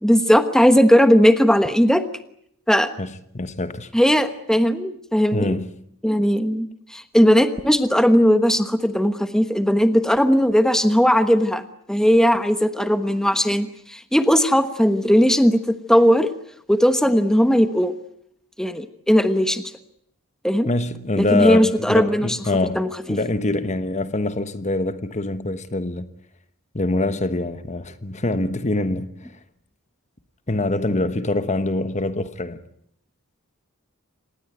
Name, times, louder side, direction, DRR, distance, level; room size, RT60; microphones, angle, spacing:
voice 1, 0.0-2.0 2.7-2.9 3.9-5.6 6.0-16.3 16.7-17.9 18.6-19.6 20.4-20.7 21.2-22.4 22.7-23.2, equal, 5° left, 1.2 m, -18 dB
voice 2, 3.0-3.9 5.3-5.7 20.6-22.8 23.1-26.1 26.7-29.3 30.5-32.6, left 2 dB, 30° left, 1.2 m, -24 dB
26.5 x 19.5 x 9.2 m
head